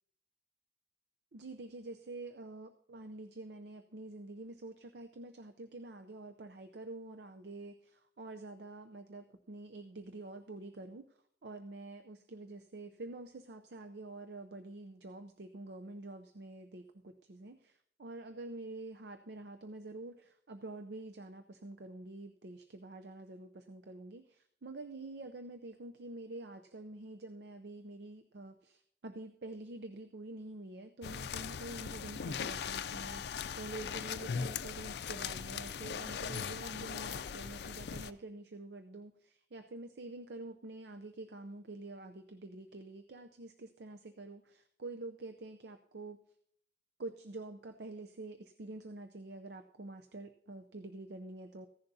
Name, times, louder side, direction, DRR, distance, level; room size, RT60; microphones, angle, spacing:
voice 1, 1.3-11.1 11.4-46.2 47.0-51.7, right 2 dB, 70° right, 8 dB, 0.6 m, -47 dB
sound 1, 31.0-38.1, left 7 dB, 70° left, 0.4 m, -39 dB
15.0 x 10.5 x 2.7 m, 0.69 s
head